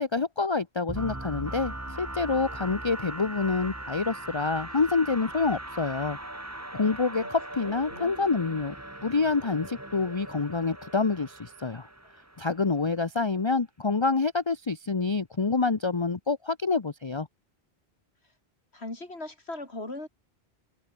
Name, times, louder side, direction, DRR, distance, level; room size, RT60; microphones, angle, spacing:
voice 1, 0.0-6.2 6.7-8.7 9.0-11.9 12.4-17.3, left 4 dB, 25° left, 0.9 m, -27 dB
sound 1, 0.9-12.7, right 1 dB, 15° right, 1.9 m, -39 dB
voice 2, 7.6-8.1 18.7-20.1, left 2 dB, 70° left, 5.0 m, -39 dB
omnidirectional pair, 1.1 m